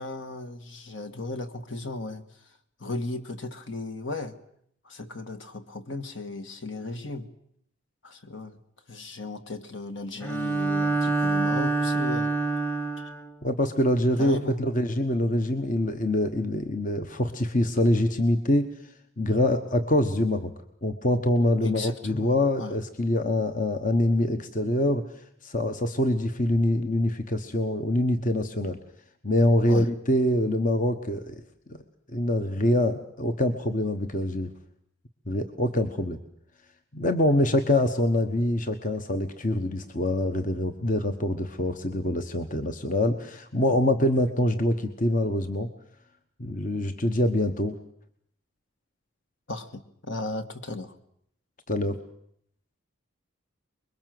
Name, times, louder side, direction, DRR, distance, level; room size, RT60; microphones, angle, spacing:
voice 1, 0.0-2.2 2.8-4.4 4.8-7.3 8.0-8.6 8.9-12.3 13.0-13.1 14.2-14.6 21.6-22.7 29.7-29.9 49.5-51.0, left 2 dB, 60° left, 9 dB, 1.7 m, -36 dB
Bowed string instrument, 10.2-13.3, right 3 dB, 10° left, 1.2 m, -26 dB
voice 2, 13.4-20.5 20.8-25.0 25.4-28.8 29.2-31.4 31.7-31.8 32.1-34.5 35.3-36.2 36.9-45.7 46.4-47.8 51.7-52.0, left 1 dB, 40° left, 7 dB, 1.2 m, -25 dB
25.0 x 22.0 x 7.8 m, 0.70 s
head